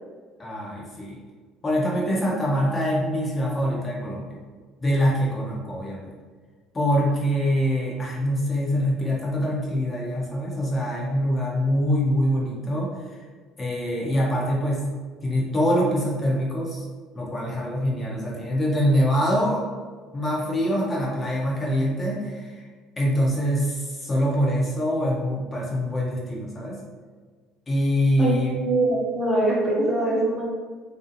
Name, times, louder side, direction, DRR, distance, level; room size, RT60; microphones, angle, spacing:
voice 1, 0.4-1.2 1.6-4.2 4.8-6.1 6.7-13.2 13.6-14.8 15.2-16.8 17.1-19.6 20.1-22.6 23.0-26.8 27.7-28.6, equal, 25° left, -4 dB, 0.6 m, -24 dB
voice 2, 28.2-30.4, right 2 dB, 20° right, -4 dB, 0.6 m, -23 dB
2.5 x 2.0 x 2.7 m, 1.5 s
supercardioid pair, 105°, 0 cm